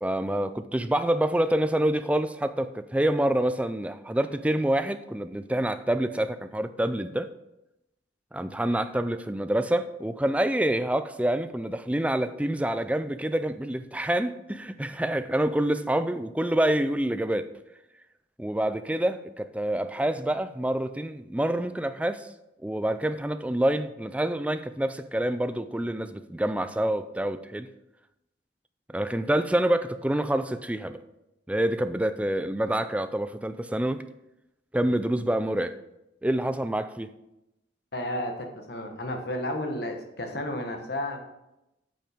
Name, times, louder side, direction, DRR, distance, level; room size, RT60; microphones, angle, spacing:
voice 1, 0.0-7.3 8.3-17.5 18.4-22.3 22.6-27.7 28.9-31.0 31.5-34.0 34.7-35.8 36.2-37.1, right 1 dB, 5° right, 0.4 m, -27 dB
voice 2, 37.9-41.2, left 1 dB, 60° left, 1.3 m, -32 dB
8.9 x 5.5 x 5.1 m
head